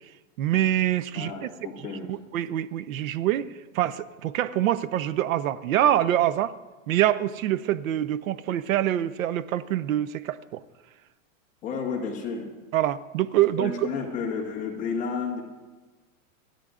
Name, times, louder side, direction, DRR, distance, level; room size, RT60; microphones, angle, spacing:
voice 1, 0.4-1.5 2.1-6.6 6.9-10.6 12.7-13.9, right 12 dB, 85° right, 15 dB, 0.8 m, -25 dB
voice 2, 1.1-2.1 11.6-12.5 13.6-15.4, left 5 dB, 20° left, -2 dB, 1.6 m, -31 dB
27.0 x 9.4 x 2.5 m, 1.2 s
supercardioid pair, 175°, 40 cm